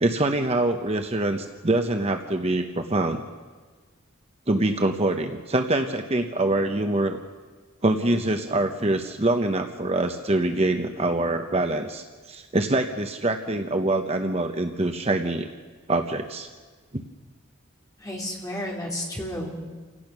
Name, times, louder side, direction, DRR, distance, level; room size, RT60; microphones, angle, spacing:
voice 1, 0.0-3.2 4.5-7.2 7.8-15.5 15.9-16.5, right 2 dB, 30° right, 6 dB, 0.9 m, -24 dB
voice 2, 18.0-19.7, left 1 dB, 15° left, -2 dB, 3.8 m, -32 dB
29.0 x 17.0 x 6.1 m, 1.4 s
head